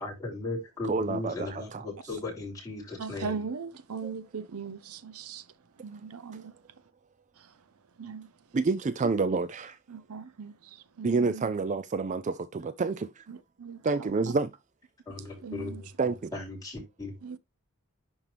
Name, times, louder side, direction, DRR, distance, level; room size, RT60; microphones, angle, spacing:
voice 1, 0.0-3.4 15.1-15.9 16.3-17.1, left 2 dB, 15° left, 5.7 m, -37 dB
voice 2, 0.8-2.2 4.0-4.1 8.5-9.8 11.0-13.3 13.8-14.5 16.0-16.3, right 4 dB, 35° right, 0.4 m, -29 dB
voice 3, 3.0-5.5 5.8-6.8 7.4-7.6 8.0-8.3 9.9-11.5 13.3-14.1 15.1-15.8 17.2-17.4, right 5 dB, 80° right, 0.7 m, -40 dB
11.0 x 4.5 x 3.4 m
head